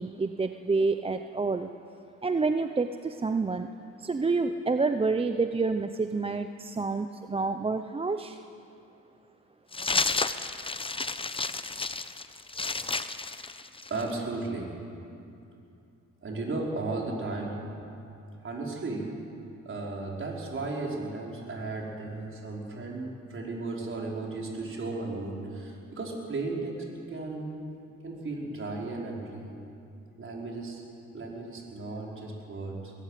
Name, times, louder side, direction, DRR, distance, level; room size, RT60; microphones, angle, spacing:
voice 1, 0.0-1.7 2.2-3.7 4.0-8.4, right 4 dB, 20° right, 8 dB, 0.7 m, -28 dB
sound 1, 9.7-14.1, left 3 dB, 20° left, 0.8 m, -31 dB
voice 2, 13.9-14.7 16.2-17.6 18.4-19.1 19.6-27.5 28.0-29.6 30.2-30.8 31.1-32.9, right 3 dB, 45° right, -2 dB, 5.1 m, -35 dB
21.5 x 13.5 x 9.3 m, 2.6 s
cardioid pair, 90°, 30 cm